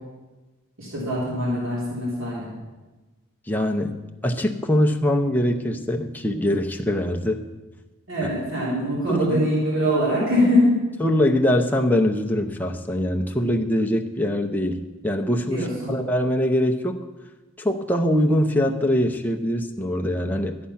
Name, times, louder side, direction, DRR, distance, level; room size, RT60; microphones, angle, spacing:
voice 1, 0.8-2.5 8.1-10.7 15.5-15.9, equal, 70° right, -7 dB, 3.6 m, -23 dB
voice 2, 3.5-7.5 9.1-9.4 11.0-17.0 17.6-20.6, equal, 10° left, 3 dB, 0.7 m, -23 dB
13.0 x 8.5 x 5.7 m, 1.2 s
head